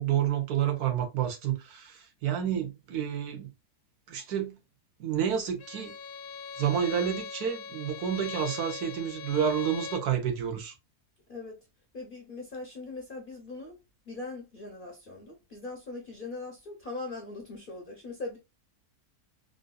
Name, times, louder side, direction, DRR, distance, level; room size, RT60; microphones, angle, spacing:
voice 1, 0.0-3.5 4.1-4.6 5.0-5.9 6.6-10.7, right 9 dB, 75° right, 1.4 m, -29 dB
Bowed string instrument, 5.6-10.1, left 6 dB, 85° left, 1.2 m, -40 dB
voice 2, 11.9-13.8 14.1-18.4, left 3 dB, 45° left, 0.8 m, -40 dB
3.8 x 2.6 x 2.2 m
omnidirectional pair, 1.6 m